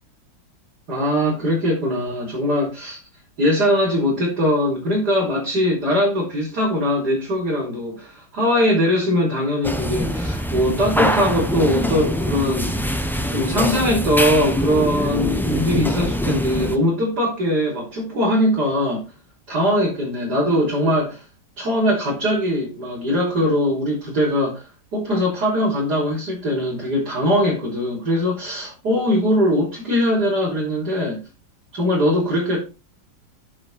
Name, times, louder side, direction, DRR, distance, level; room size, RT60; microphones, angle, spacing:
voice 1, 0.9-3.0 3.4-12.8 13.2-19.1 19.5-21.2 21.6-24.7 24.9-31.2 31.7-32.6, equal, 55° right, 4.7 m, -21 dB
sound 1, 9.6-16.8, equal, ahead, 0.5 m, -23 dB
8.5 x 8.0 x 4.4 m
omnidirectional pair, 2.0 m